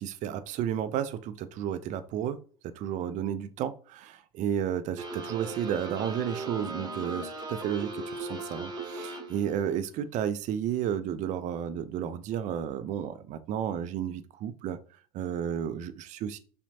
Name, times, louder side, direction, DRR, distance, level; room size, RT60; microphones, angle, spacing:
voice 1, 0.0-2.4 2.6-14.8 15.1-16.4, right 9 dB, 40° right, 12 dB, 0.4 m, -32 dB
sound 1, 5.0-9.6, right 2 dB, 20° right, 0.9 m, -38 dB
5.6 x 2.2 x 2.7 m, 0.41 s
hypercardioid pair, 80°, 20 cm